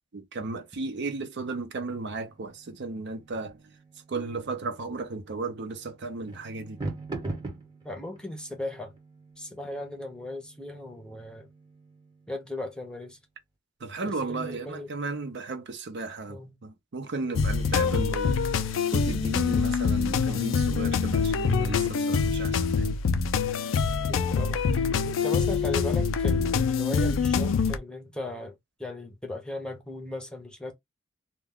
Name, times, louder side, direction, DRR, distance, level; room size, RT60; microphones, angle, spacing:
voice 1, 0.1-3.5 4.1-6.8 13.8-18.4 18.9-22.9, right 3 dB, 60° right, 0.6 m, -34 dB
sound 1, 2.3-13.1, right 2 dB, 20° right, 0.9 m, -43 dB
voice 2, 7.8-8.9 9.4-11.5 12.3-13.2 14.0-15.0 16.3-16.6 17.2-17.5 23.9-30.7, left 1 dB, 5° left, 0.6 m, -37 dB
sound 2, 17.4-27.8, left 5 dB, 75° left, 0.4 m, -25 dB
2.3 x 2.2 x 3.4 m
head